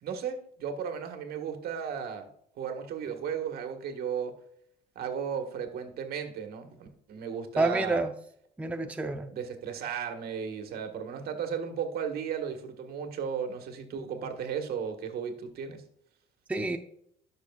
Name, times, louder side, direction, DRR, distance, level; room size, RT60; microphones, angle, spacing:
voice 1, 0.0-2.3 2.6-4.3 4.9-8.0 9.3-15.8, right 7 dB, 65° right, 1.5 m, -35 dB
voice 2, 7.6-8.1 8.6-9.3 16.5-16.8, right 2 dB, 10° right, 0.7 m, -28 dB
15.0 x 6.5 x 2.4 m
cardioid pair, 110°, 17 cm